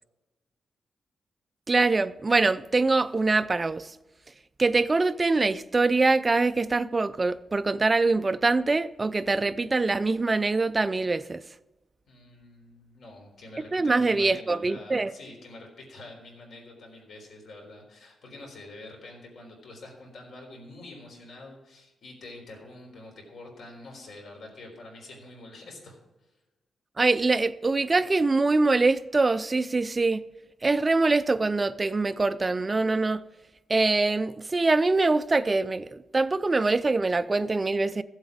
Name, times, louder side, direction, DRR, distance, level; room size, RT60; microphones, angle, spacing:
voice 1, 1.7-3.9 4.6-11.4 13.7-15.1 27.0-30.2 30.6-33.2 33.7-38.0, right 3 dB, 20° right, 0.4 m, -24 dB
voice 2, 12.1-26.0, left 2 dB, 65° left, 3.9 m, -46 dB
14.5 x 8.1 x 4.9 m
wide cardioid pair, 165°, 0 cm